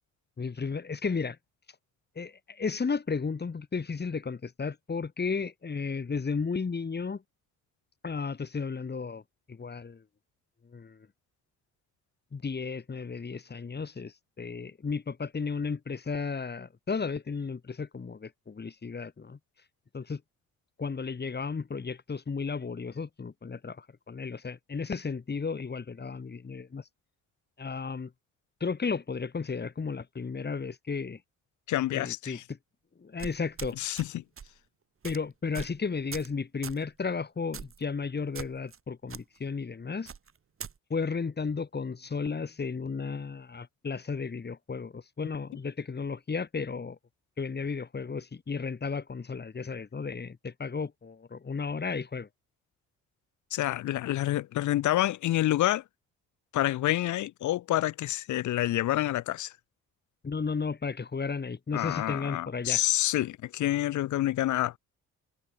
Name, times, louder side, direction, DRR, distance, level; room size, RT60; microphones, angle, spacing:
voice 1, 0.4-1.4 2.2-7.2 8.0-9.2 9.5-10.0 10.6-11.1 12.3-19.4 19.9-20.2 20.8-26.8 27.6-28.1 28.6-31.2 31.9-32.6 33.0-33.8 35.0-40.1 40.9-47.0 47.4-52.3 60.2-62.8, left 5 dB, 35° left, 7.0 m, -34 dB
voice 2, 31.7-32.4 33.8-34.2 53.5-55.8 56.5-59.5 61.7-64.8, left 14 dB, 75° left, 1.1 m, -28 dB
sound 1, 33.2-34.1 34.4-34.6 35.0-35.2 35.5-35.8 36.1-36.3 36.6-36.8 37.5-37.8 38.3-38.8 39.1-39.2 40.1-40.7, right 6 dB, 45° right, 7.4 m, -41 dB
cardioid pair, 90°, 30 cm